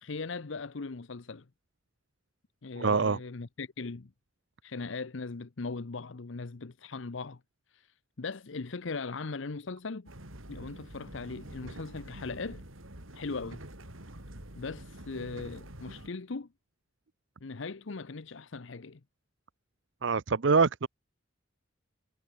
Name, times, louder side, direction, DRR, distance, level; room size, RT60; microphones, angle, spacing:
voice 1, 0.0-1.5 2.6-4.1 4.6-7.4 7.7-10.1 10.5-12.6 13.1-13.6 14.6-16.5 17.4-19.0, left 4 dB, 70° left, 0.8 m, -39 dB
voice 2, 2.8-3.2 20.0-20.9, right 4 dB, 65° right, 0.6 m, -25 dB
sound 1, 10.1-16.1, right 1 dB, 90° right, 4.9 m, -46 dB
head